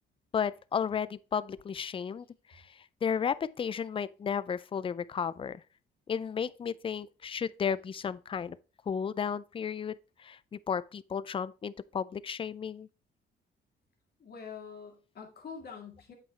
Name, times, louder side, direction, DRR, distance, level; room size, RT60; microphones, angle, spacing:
voice 1, 0.3-2.6 3.0-5.6 6.1-8.6 8.9-12.9, left 7 dB, 25° left, 0.3 m, -33 dB
voice 2, 14.2-16.1, left 6 dB, 50° left, 2.2 m, -45 dB
8.2 x 5.6 x 3.2 m
cardioid pair, 90°, 20 cm